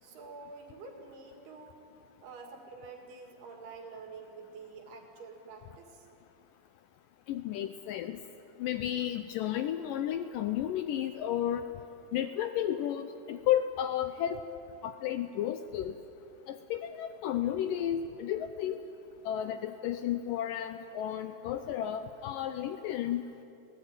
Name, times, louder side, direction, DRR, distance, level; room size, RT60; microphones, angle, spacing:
voice 1, 0.0-1.8 2.2-6.1, right 4 dB, 80° right, 3 dB, 4.3 m, -48 dB
voice 2, 7.3-8.2 8.6-11.6 12.1-14.4 14.8-15.9 16.5-18.8 19.3-23.3, left 11 dB, 80° left, 9 dB, 2.0 m, -32 dB
21.0 x 17.5 x 9.2 m, 2.7 s
omnidirectional pair, 4.5 m